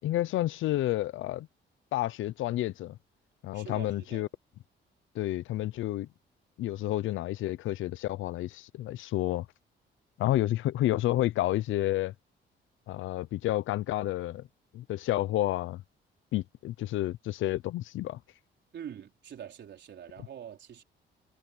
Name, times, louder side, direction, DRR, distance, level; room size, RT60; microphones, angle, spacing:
voice 1, 0.0-1.5 1.9-3.0 3.4-4.3 5.1-6.1 6.6-9.5 10.2-12.1 12.9-14.4 14.7-15.8 16.3-18.2, left 14 dB, 80° left, 0.7 m, -30 dB
voice 2, 3.5-4.3 18.7-20.8, right 9 dB, 65° right, 4.6 m, -44 dB
cardioid pair, 90°, 20 cm